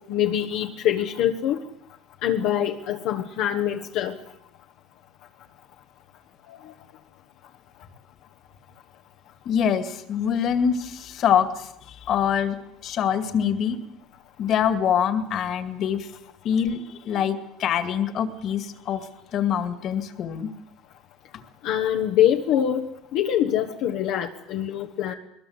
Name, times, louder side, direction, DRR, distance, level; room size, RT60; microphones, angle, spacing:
voice 1, 0.1-1.6 2.2-4.2 6.5-6.6 21.6-25.1, left 10 dB, 65° left, 1.4 m, -24 dB
voice 2, 9.5-13.8 14.4-16.1 16.4-20.5, left 8 dB, 45° left, 2.2 m, -25 dB
21.5 x 20.5 x 8.1 m
cardioid pair, 135°, 0 cm